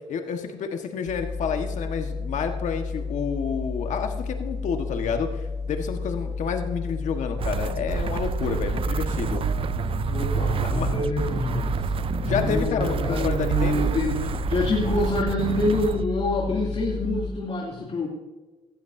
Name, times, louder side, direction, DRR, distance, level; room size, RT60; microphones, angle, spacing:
voice 1, 0.1-9.4 10.5-10.9 12.2-13.9, left 6 dB, 70° left, 5 dB, 1.5 m, -29 dB
sound 1, 1.1-17.3, left 4 dB, 90° left, 4.6 m, -32 dB
sound 2, 7.4-16.1, right 9 dB, 45° right, 0.4 m, -28 dB
voice 2, 10.1-11.9 12.2-18.1, left 2 dB, 50° left, -4 dB, 2.8 m, -26 dB
17.0 x 13.0 x 2.7 m, 1.2 s
supercardioid pair, 65°, 13 cm